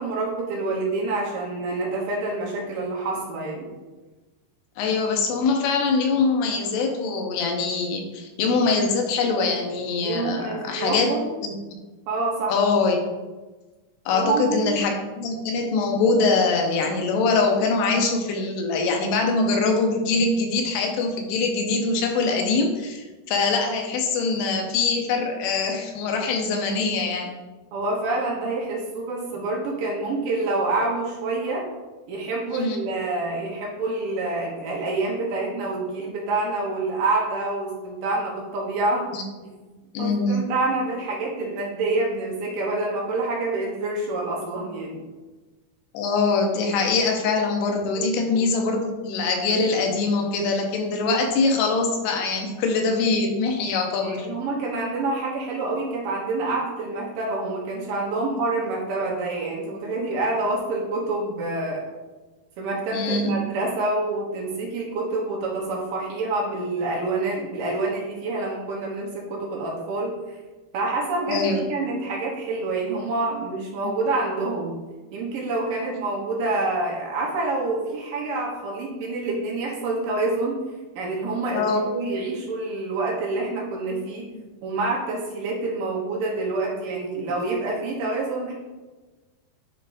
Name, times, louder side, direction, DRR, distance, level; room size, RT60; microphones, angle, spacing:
voice 1, 0.0-3.7 10.0-11.3 12.1-12.6 14.1-14.7 27.7-31.6 32.1-39.1 40.0-45.0 47.9-48.1 54.0-61.9 62.6-70.4 70.7-74.7 75.1-80.6 81.0-84.3 84.6-88.5, right 2 dB, 70° right, -3 dB, 2.4 m, -27 dB
voice 2, 4.8-11.1 11.4-11.8 12.5-13.0 14.1-27.3 32.5-32.8 39.1-39.2 39.9-40.5 45.9-54.3 62.9-63.3 71.3-71.6 73.8-73.9 81.5-81.8, left 4 dB, 90° left, 2 dB, 2.9 m, -23 dB
9.8 x 4.4 x 2.6 m, 1.2 s
omnidirectional pair, 4.6 m